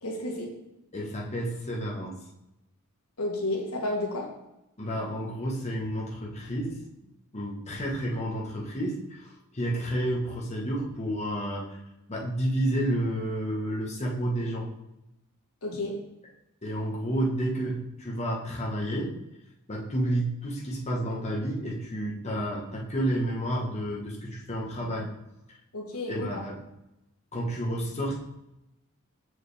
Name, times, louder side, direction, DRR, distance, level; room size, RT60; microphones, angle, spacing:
voice 1, 0.0-0.5 3.2-4.3 15.6-15.9 25.7-26.4, left 2 dB, 90° left, 0 dB, 1.3 m, -31 dB
voice 2, 0.9-2.2 4.8-6.8 7.3-11.8 12.1-14.7 16.6-19.1 19.7-25.1 26.1-26.6 27.3-28.1, right 1 dB, 30° left, -3 dB, 1.2 m, -30 dB
6.3 x 4.7 x 3.4 m, 0.89 s
head